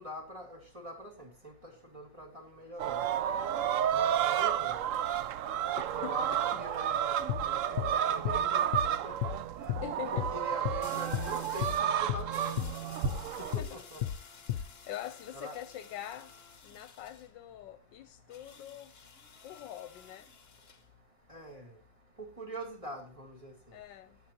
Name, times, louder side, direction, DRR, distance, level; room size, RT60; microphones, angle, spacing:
voice 1, 0.0-1.5 1.9-3.0 3.9-4.7 5.2-5.3 5.9-6.3 6.6-7.1 7.5-8.7 9.0-9.7 10.1-12.6 13.5-14.0 15.3-15.6 21.3-21.7 22.4-23.5, equal, 15° right, 2.3 m, -44 dB
sound 1, 2.8-13.6, right 10 dB, 75° right, 0.7 m, -31 dB
voice 2, 5.7-6.6 9.8-10.3 13.3-13.8 14.3-14.4 14.9-19.0 19.4-20.3 23.7-24.2, left 12 dB, 80° left, 1.3 m, -44 dB
sound 2, 7.3-7.5 7.8-7.9 8.3-8.4 8.7-8.9 9.2-9.4 9.7-9.9 10.2-10.3 10.7-10.8 11.1-11.3 11.6-11.8 12.1-12.3 12.6-12.7 13.1-13.2 13.5-13.7 14.0-14.2 14.5-14.7, left 11 dB, 65° left, 1.0 m, -32 dB
sound 3, 10.8-12.0 12.3-17.3 18.3-20.9, left 5 dB, 35° left, 1.3 m, -53 dB
19.0 x 8.5 x 2.8 m
omnidirectional pair, 2.0 m